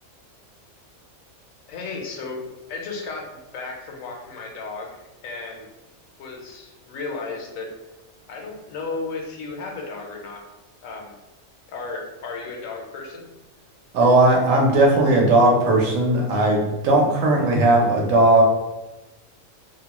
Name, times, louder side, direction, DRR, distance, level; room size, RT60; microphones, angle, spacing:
voice 1, 1.7-2.4 2.7-4.9 5.2-5.7 6.2-7.7 8.3-10.4 10.8-11.2 11.7-13.2, left 3 dB, 80° left, 1 dB, 1.0 m, -34 dB
voice 2, 13.9-18.4, right 2 dB, 75° right, -1 dB, 1.0 m, -17 dB
2.7 x 2.2 x 2.9 m, 1.0 s
omnidirectional pair, 1.4 m